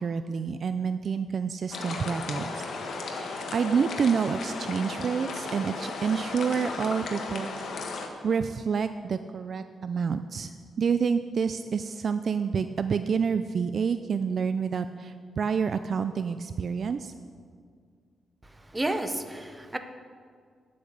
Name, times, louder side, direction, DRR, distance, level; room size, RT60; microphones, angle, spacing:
voice 1, 0.0-7.5 8.2-10.5 10.8-17.1, right 6 dB, 45° right, 10 dB, 0.4 m, -28 dB
sound 1, 1.7-8.1, left 3 dB, 65° left, 1.4 m, -35 dB
voice 2, 18.7-19.8, right 1 dB, 15° right, 7 dB, 0.8 m, -30 dB
10.0 x 8.5 x 6.7 m, 2.1 s
cardioid pair, 130°, 0 cm